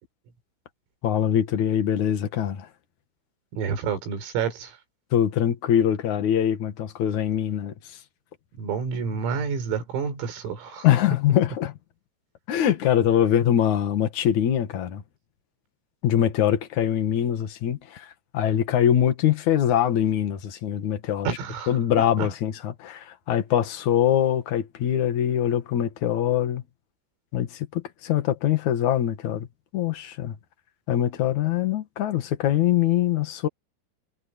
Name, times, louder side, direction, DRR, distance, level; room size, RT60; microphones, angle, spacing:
voice 1, 1.0-2.7 5.1-8.0 10.8-11.7 12.5-15.0 16.0-21.3 21.7-26.6 27.3-29.5 29.7-30.4 30.9-33.5, left 10 dB, 55° left, 2.2 m, -23 dB
voice 2, 3.5-4.8 8.6-10.9 21.3-21.7 22.2-22.3, right 6 dB, 90° right, 7.3 m, -29 dB
omnidirectional pair, 5.9 m